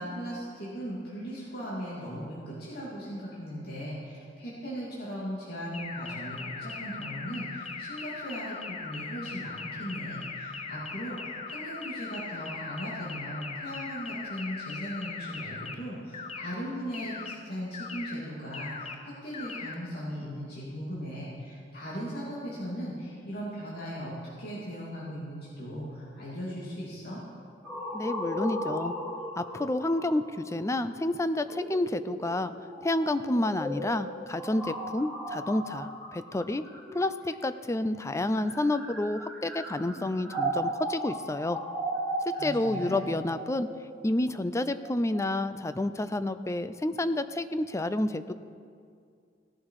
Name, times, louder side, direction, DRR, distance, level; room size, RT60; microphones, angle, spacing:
voice 1, 0.0-27.2 42.3-43.0, equal, 60° left, -7 dB, 2.8 m, -38 dB
sound 1, 5.7-15.7 16.1-16.5 16.9-17.3 17.7-18.1 18.5-18.9 19.3-19.7, left 4 dB, 35° left, 1.0 m, -39 dB
sound 2, 27.6-37.5 38.2-45.2, right 1 dB, ahead, 4.0 m, -36 dB
voice 2, 27.9-28.9 29.4-32.5 32.8-36.6 36.9-41.6 42.3-43.7 44.0-48.3, left 1 dB, 15° left, 12 dB, 0.5 m, -29 dB
17.0 x 11.0 x 4.8 m, 2.3 s
head